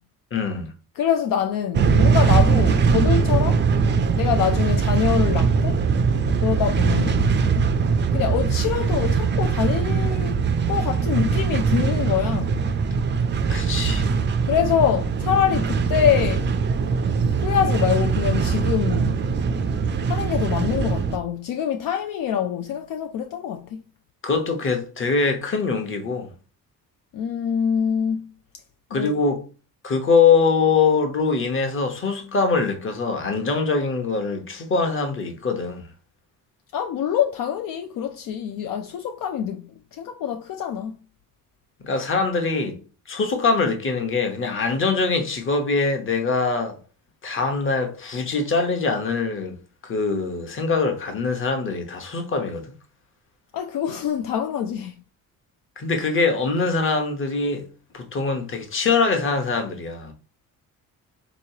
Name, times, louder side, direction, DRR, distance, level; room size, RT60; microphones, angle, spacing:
voice 1, 0.3-0.7 13.5-14.1 24.2-26.3 28.9-29.4 29.8-35.9 41.8-42.8 43.1-46.8 47.2-49.6 49.8-52.7 55.8-57.7 57.9-60.1, left 4 dB, 35° left, 0.9 m, -23 dB
voice 2, 1.0-3.6 4.2-5.8 6.4-7.3 8.1-10.4 10.7-12.5 14.4-16.5 17.4-19.2 20.1-23.8 27.1-28.3 28.9-29.1 36.7-41.0 53.5-55.0, left 9 dB, 65° left, 0.5 m, -25 dB
sound 1, 1.7-21.2, right 5 dB, 30° right, 0.4 m, -21 dB
3.8 x 3.0 x 2.7 m
cardioid pair, 125°, 35 cm